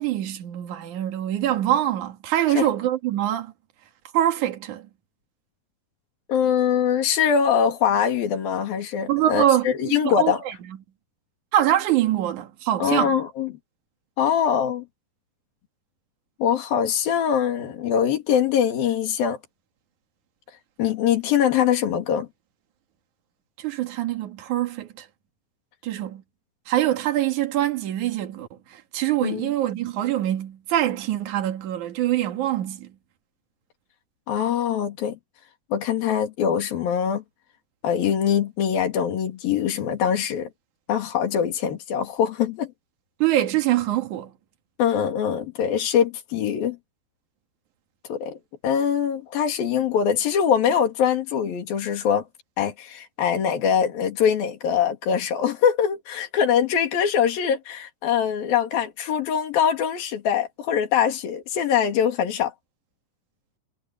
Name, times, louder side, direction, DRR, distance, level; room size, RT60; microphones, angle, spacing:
voice 1, 0.0-3.5 4.1-4.9 9.1-10.6 11.5-13.1 23.6-25.1 25.8-26.2 26.7-32.9 43.2-44.3, right 12 dB, 60° right, 3.1 m, -24 dB
voice 2, 6.3-10.4 12.8-13.6 14.2-14.8 16.4-19.4 20.8-22.3 29.2-29.5 34.3-35.2 35.7-37.2 37.8-40.5 40.9-42.7 44.8-46.8 48.0-48.4 48.6-52.2 52.6-62.5, left 8 dB, 80° left, 4.4 m, -23 dB
omnidirectional pair, 4.1 m